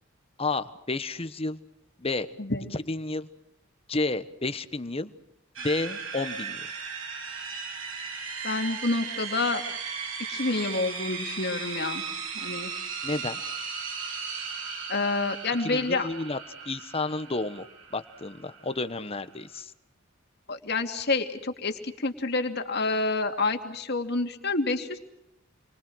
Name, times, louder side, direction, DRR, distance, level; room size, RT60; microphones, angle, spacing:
voice 1, 0.4-1.6 2.0-2.3 2.7-3.3 3.9-5.1 5.6-6.6 13.0-13.4 15.6-16.4 16.6-17.7 17.9-19.7, left 3 dB, 30° left, 12 dB, 1.2 m, -31 dB
voice 2, 2.4-2.7 8.4-9.6 10.3-12.0 12.3-12.7 14.9-16.1 20.5-25.0, left 3 dB, 55° left, 5 dB, 2.7 m, -28 dB
sound 1, 5.6-19.6, right 5 dB, 70° right, 4.4 m, -37 dB
29.5 x 24.5 x 6.3 m, 0.78 s
head